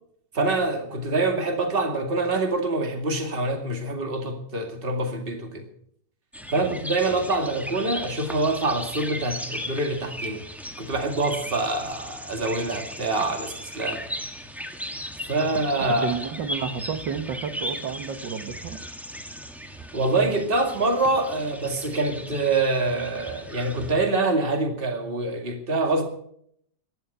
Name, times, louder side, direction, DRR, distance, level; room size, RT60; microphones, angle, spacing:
voice 1, 0.3-5.7 6.5-10.4 10.8-14.0 15.3-16.1 19.9-26.0, right 2 dB, 30° right, 4 dB, 2.3 m, -25 dB
sound 1, 6.3-23.9, equal, ahead, 1.3 m, -37 dB
voice 2, 16.0-18.8, right 6 dB, 85° right, 10 dB, 1.9 m, -31 dB
15.5 x 12.0 x 5.5 m, 0.66 s
omnidirectional pair, 1.9 m